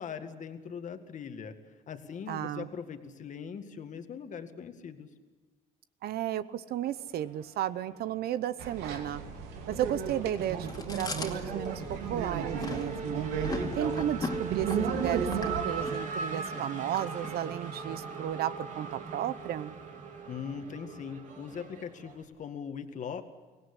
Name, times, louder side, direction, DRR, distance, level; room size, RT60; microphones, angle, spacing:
voice 1, 0.0-1.6 1.9-5.1 20.3-23.2, left 7 dB, 45° left, 8 dB, 1.9 m, -40 dB
voice 2, 2.3-2.7 6.0-9.2 9.7-13.2 13.8-19.7, right 11 dB, 65° right, 15 dB, 0.9 m, -34 dB
Race car auto racing / Accelerating revving vroom, 7.2-8.2 8.5-22.2, right 4 dB, 45° right, 3.3 m, -40 dB
sound 1, 8.6-15.6, right 6 dB, 90° right, 2.8 m, -34 dB
Chewing mastication, 10.7-17.7, left 3 dB, 20° left, 2.5 m, -40 dB
24.0 x 17.5 x 9.9 m, 1.3 s
cardioid pair, 110°, 17 cm